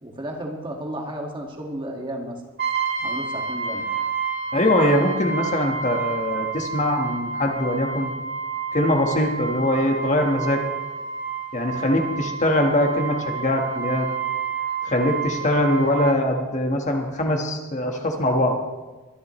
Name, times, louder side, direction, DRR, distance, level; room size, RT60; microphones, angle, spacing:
voice 1, 0.0-2.4 3.0-3.8, right 1 dB, 25° right, 1 dB, 1.9 m, -33 dB
Brass instrument, 2.6-16.2, right 5 dB, 55° right, 2.6 m, -29 dB
voice 2, 4.5-8.1 8.7-10.6 11.5-14.1 14.8-18.6, left 1 dB, 35° left, 2 dB, 1.5 m, -22 dB
22.5 x 12.0 x 3.2 m, 1.2 s
head